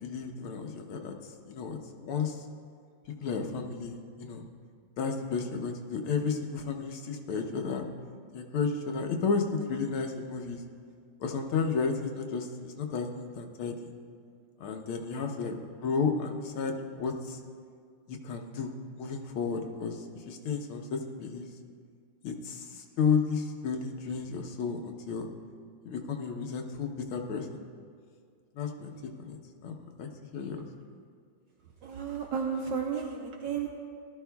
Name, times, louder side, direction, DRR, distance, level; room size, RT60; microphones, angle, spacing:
voice 1, 0.0-1.1 1.4-2.4 3.2-4.5 5.0-7.8 8.3-10.6 11.2-13.9 14.6-15.6 15.8-17.4 18.1-18.7 19.0-21.5 22.2-25.3 25.9-27.6 28.6-28.9 29.2-29.4 29.6-30.6, left 5 dB, 85° left, 3 dB, 1.8 m, -32 dB
voice 2, 31.8-33.7, right 6 dB, 70° right, 2 dB, 1.3 m, -33 dB
18.0 x 13.0 x 2.3 m, 2.2 s
omnidirectional pair, 2.3 m